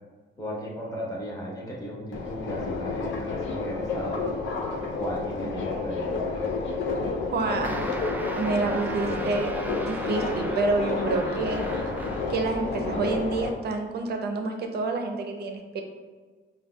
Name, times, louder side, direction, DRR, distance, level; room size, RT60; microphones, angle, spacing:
voice 1, 0.4-4.3 4.9-6.2 8.5-9.4, equal, 15° left, -4 dB, 1.1 m, -35 dB
Subway metro underground, 2.1-13.5, left 3 dB, 70° left, 0.5 m, -30 dB
voice 2, 7.3-7.8 8.4-11.6 12.3-15.8, right 3 dB, 55° right, 4 dB, 0.5 m, -28 dB
sound 1, 7.6-12.5, right 1 dB, 10° right, 0.3 m, -37 dB
5.1 x 2.2 x 2.2 m, 1.4 s
cardioid pair, 90°, 20 cm